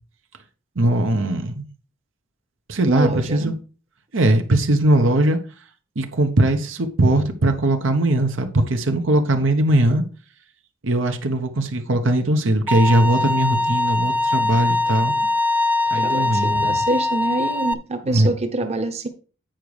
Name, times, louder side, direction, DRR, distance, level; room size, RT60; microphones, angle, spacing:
voice 1, 0.8-1.6 2.7-3.5 4.1-5.4 6.0-10.0 10.8-15.1 15.9-16.7 18.0-18.3, right 1 dB, 75° right, 1.0 m, -20 dB
voice 2, 2.9-3.6 14.9-15.3 15.9-19.1, right 2 dB, 35° right, 1.0 m, -26 dB
Bowed string instrument, 12.7-17.7, left 2 dB, 10° right, 0.4 m, -22 dB
9.0 x 5.2 x 4.8 m
head